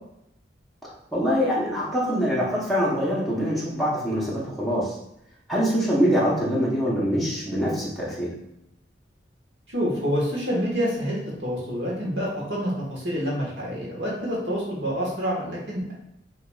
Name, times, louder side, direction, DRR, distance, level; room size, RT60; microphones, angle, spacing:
voice 1, 0.8-5.0 5.5-8.3, equal, ahead, -7 dB, 0.7 m, -24 dB
voice 2, 9.7-15.9, equal, 70° right, -5 dB, 1.4 m, -27 dB
4.6 x 2.9 x 2.3 m, 0.80 s
head